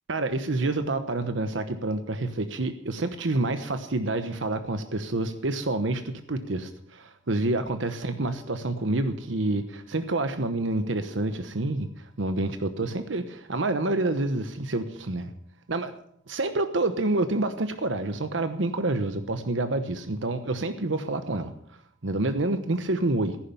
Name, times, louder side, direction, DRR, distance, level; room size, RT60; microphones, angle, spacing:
voice 1, 0.1-15.3 15.7-15.9 16.3-21.5 22.0-23.4, right 2 dB, 75° right, 9 dB, 1.0 m, -28 dB
14.5 x 11.0 x 7.0 m, 0.68 s
head